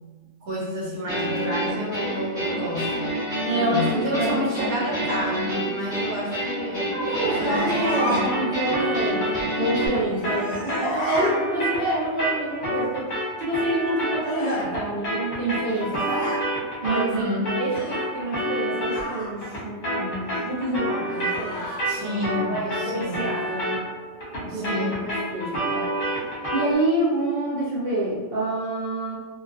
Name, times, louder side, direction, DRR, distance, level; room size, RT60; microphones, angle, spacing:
voice 1, 0.4-3.0 3.5-6.9 7.4-8.2 16.8-17.5 21.8-23.3 24.5-25.1, equal, 75° right, -5 dB, 1.2 m, -29 dB
sound 1, 1.1-9.9, right 1 dB, 5° right, 0.4 m, -28 dB
voice 2, 3.4-4.7 6.9-9.3 9.6-16.3 16.8-22.2 22.4-23.8 24.3-25.9 26.5-29.2, right 1 dB, 55° right, -6 dB, 0.7 m, -27 dB
sound 2, 7.2-8.2 9.9-11.4 14.2-14.7 15.5-16.4 17.7-18.1 18.9-19.3 21.1-21.9 23.2-23.6, left 1 dB, 65° left, 0.5 m, -35 dB
sound 3, 7.9-17.2 17.5-26.8, equal, 40° left, 0.8 m, -29 dB
2.3 x 2.2 x 2.4 m, 1.3 s
omnidirectional pair, 1.4 m